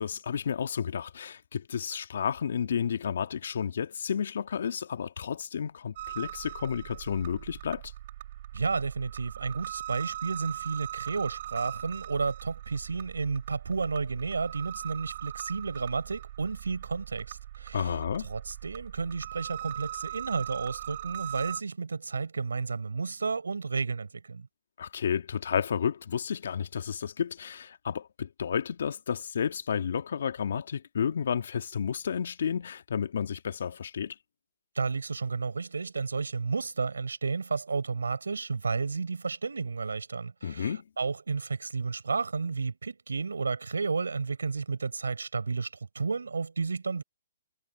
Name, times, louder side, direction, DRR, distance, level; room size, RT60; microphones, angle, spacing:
voice 1, 0.0-7.8 17.7-18.3 24.8-34.1 40.4-40.8, left 7 dB, 65° left, 1.6 m, -31 dB
sound 1, 6.0-21.6, right 13 dB, 50° right, 5.3 m, -41 dB
voice 2, 8.5-17.9 18.2-24.5 34.8-45.7 45.9-47.0, right 4 dB, 85° right, 4.0 m, -32 dB
hypercardioid pair, 135°, 0 cm